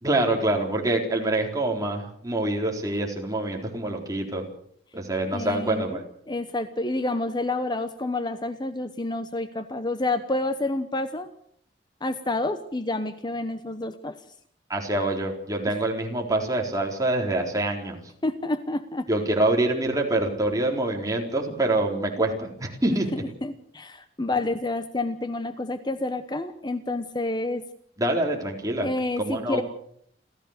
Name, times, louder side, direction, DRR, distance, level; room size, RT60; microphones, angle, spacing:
voice 1, 0.0-4.4 4.9-6.0 14.7-18.0 19.1-23.1 28.0-28.9 29.2-29.6, right 2 dB, 20° right, 1 dB, 4.1 m, -25 dB
voice 2, 5.3-6.0 6.3-11.3 12.0-14.1 15.7-15.8 18.2-19.1 23.1-27.6 28.8-29.6, left 2 dB, 25° left, 10 dB, 1.0 m, -29 dB
30.0 x 14.0 x 6.7 m, 0.65 s
head